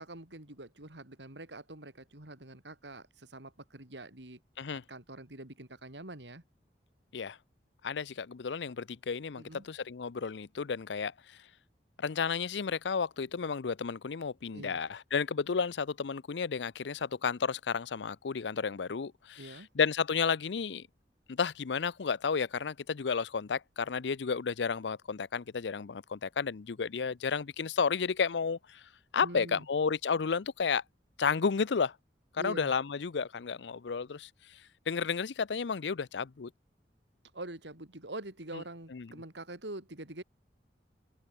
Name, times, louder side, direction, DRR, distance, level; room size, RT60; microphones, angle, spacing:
voice 1, 0.0-4.4 4.9-6.4 9.4-9.7 14.5-14.8 19.4-19.7 29.2-29.7 32.4-32.7 37.3-40.2, right 2 dB, 85° right, 4.0 m, -45 dB
voice 2, 7.8-11.4 12.0-20.9 21.3-28.8 29.1-30.8 31.2-32.0 32.3-34.6 34.9-36.5 38.5-38.6 38.9-39.1, left 5 dB, 80° left, 0.6 m, -32 dB
open air
head